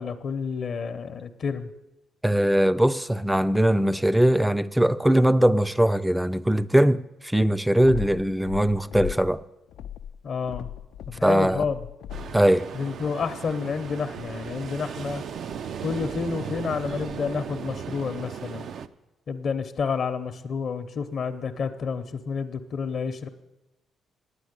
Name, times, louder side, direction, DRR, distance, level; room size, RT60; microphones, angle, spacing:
voice 1, 0.0-1.7 10.2-10.7 11.1-11.8 12.7-15.2 15.8-18.7 19.3-23.3, left 5 dB, 55° left, 0.7 m, -30 dB
voice 2, 2.2-9.4 11.2-11.7 12.3-12.7, right 1 dB, 5° right, 0.4 m, -21 dB
sound 1, 7.8-9.4 9.7-12.5, left 10 dB, 80° left, 0.4 m, -37 dB
Ocean, 12.1-18.9, right 7 dB, 65° right, 0.5 m, -36 dB
9.8 x 8.2 x 8.1 m
cardioid pair, 90°, 0 cm